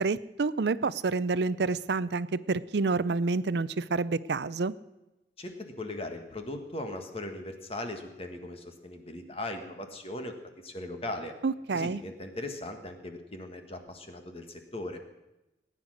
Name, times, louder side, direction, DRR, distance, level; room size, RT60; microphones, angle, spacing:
voice 1, 0.0-4.7 11.4-12.0, right 4 dB, 65° right, 17 dB, 0.5 m, -28 dB
voice 2, 5.4-10.3 10.6-11.3 11.7-15.0, left 1 dB, 35° left, 6 dB, 1.6 m, -39 dB
18.0 x 9.9 x 6.4 m, 0.99 s
head